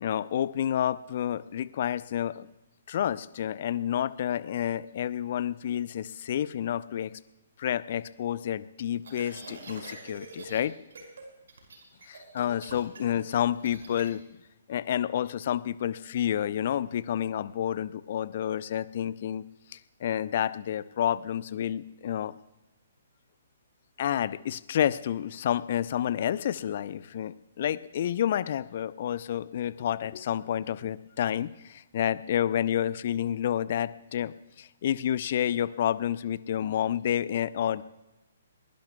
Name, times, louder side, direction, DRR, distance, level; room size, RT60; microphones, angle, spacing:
voice 1, 0.0-2.5 2.9-7.1 7.6-10.7 12.1-14.2 14.7-19.4 19.7-22.3 24.0-37.8, left 10 dB, 45° left, 17 dB, 0.6 m, -29 dB
sound 1, 9.0-10.6 10.9-11.2 11.5-14.1, right 3 dB, 60° right, 5.4 m, -45 dB
22.0 x 21.5 x 2.4 m, 1.0 s
figure-of-eight pair, 125°, 0 cm